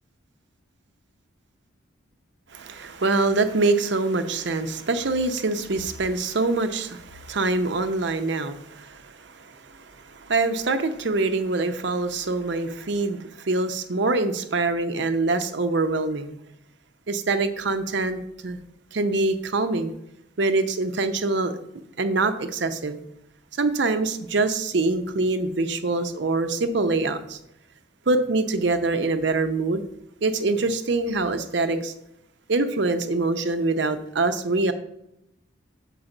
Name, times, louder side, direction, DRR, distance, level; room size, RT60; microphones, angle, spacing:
voice 1, 2.5-16.3 17.1-18.6 18.9-19.9 20.4-21.5 22.0-23.0 23.5-27.4 28.1-29.8 30.2-31.9 32.5-34.7, right 3 dB, 60° right, 9 dB, 0.6 m, -24 dB
6.5 x 4.7 x 5.9 m, 0.82 s
head